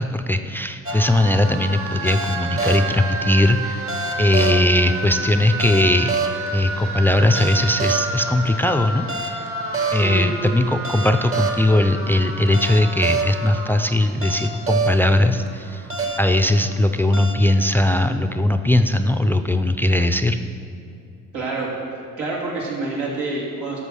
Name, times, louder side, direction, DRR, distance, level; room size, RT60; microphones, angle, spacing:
voice 1, 0.0-3.8 4.2-6.1 6.5-9.4 9.9-15.8 16.2-20.4, left 1 dB, 5° left, 7 dB, 0.4 m, -19 dB
sound 1, 0.9-17.3, right 3 dB, 45° right, 1.4 m, -27 dB
voice 2, 9.9-10.2 21.3-21.7 22.2-23.8, right 3 dB, 90° right, -5 dB, 3.0 m, -27 dB
13.0 x 6.0 x 6.3 m, 2.4 s
cardioid pair, 90°, 30 cm